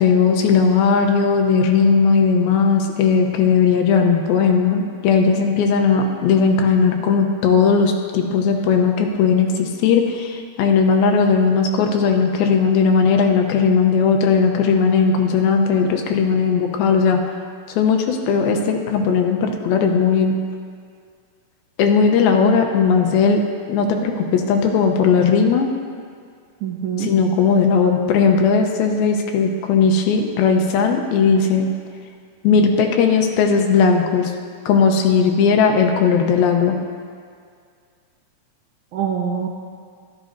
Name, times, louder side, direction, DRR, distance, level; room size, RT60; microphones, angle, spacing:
voice 1, 0.0-17.2 17.8-20.3 21.8-23.4 23.7-25.7 27.0-31.7 32.4-34.3 34.7-36.8, left 5 dB, 85° left, 4 dB, 2.6 m, -17 dB
voice 2, 26.6-27.1 32.5-32.9 38.9-39.5, right 8 dB, 80° right, -2 dB, 1.7 m, -25 dB
13.5 x 12.0 x 2.6 m, 2.1 s
omnidirectional pair, 4.3 m